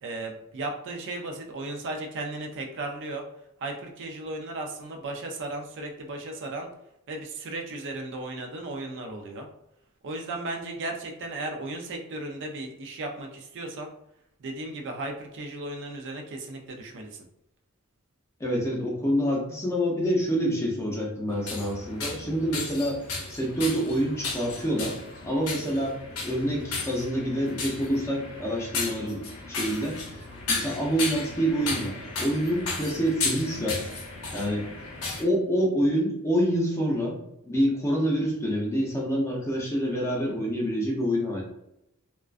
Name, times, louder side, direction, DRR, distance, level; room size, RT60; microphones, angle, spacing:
voice 1, 0.0-3.2 3.6-6.7 7.1-9.5 10.0-13.9 14.4-17.2, right 2 dB, 55° right, 3 dB, 0.4 m, -35 dB
voice 2, 18.4-23.0 23.3-33.8 34.3-34.7 35.2-37.2 37.5-41.4, equal, 15° left, -2 dB, 0.5 m, -27 dB
sound 1, 21.3-35.2, left 3 dB, 80° left, 0.7 m, -34 dB
2.4 x 2.2 x 2.4 m, 0.82 s
head